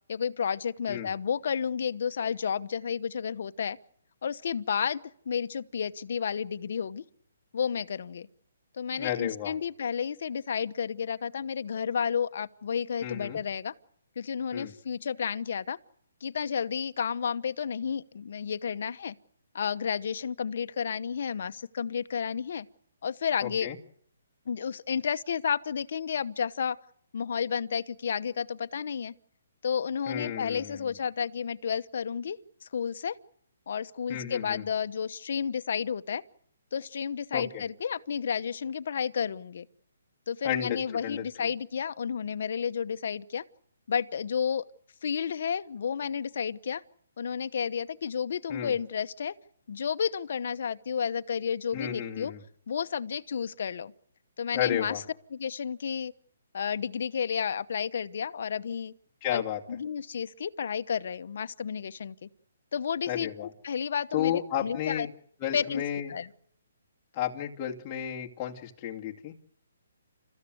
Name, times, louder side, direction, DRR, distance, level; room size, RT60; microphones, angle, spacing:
voice 1, 0.1-3.8 4.2-5.0 5.3-7.0 7.5-8.3 8.7-13.7 14.2-15.8 16.2-19.1 19.5-22.7 23.0-23.7 24.5-26.8 27.1-29.1 29.6-33.2 33.7-36.2 36.7-39.7 40.3-43.4 43.9-44.7 45.0-46.8 47.2-49.3 49.7-52.3 52.7-53.9 54.4-55.0 55.3-56.1 56.5-58.9 59.3-59.4 59.7-62.3 62.7-65.1 65.5-65.8 66.1-66.3, left 7 dB, 55° left, 1.0 m, -31 dB
voice 2, 9.0-9.5 13.0-13.4 14.5-14.7 23.4-23.8 30.1-30.9 34.1-34.6 37.3-37.6 40.4-41.5 48.5-48.7 51.7-52.4 54.5-55.0 59.2-59.6 63.1-63.5 64.1-65.1 65.4-66.1 67.1-69.3, left 10 dB, 20° left, 2.3 m, -33 dB
29.5 x 14.5 x 8.0 m
hypercardioid pair, 165°, 0 cm